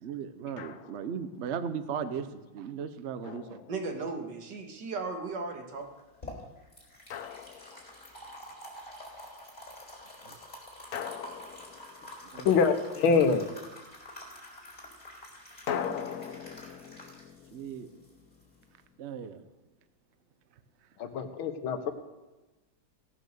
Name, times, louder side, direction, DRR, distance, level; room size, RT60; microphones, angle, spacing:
voice 1, 0.0-3.6 10.2-10.4 12.3-12.5 17.5-17.9 19.0-19.4, right 7 dB, 75° right, 11 dB, 0.6 m, -37 dB
Drum, 0.6-1.2 3.2-4.3 7.1-8.3 10.9-12.6 15.7-18.6, left 8 dB, 65° left, 0.8 m, -40 dB
voice 2, 3.7-5.8, right 3 dB, 60° right, 3 dB, 2.2 m, -36 dB
sound 1, 5.8-18.8, left 1 dB, 20° left, 3.9 m, -48 dB
voice 3, 12.5-13.5 21.0-21.9, left 5 dB, 85° left, 8 dB, 1.9 m, -25 dB
17.0 x 6.7 x 6.6 m, 1.1 s
omnidirectional pair, 2.2 m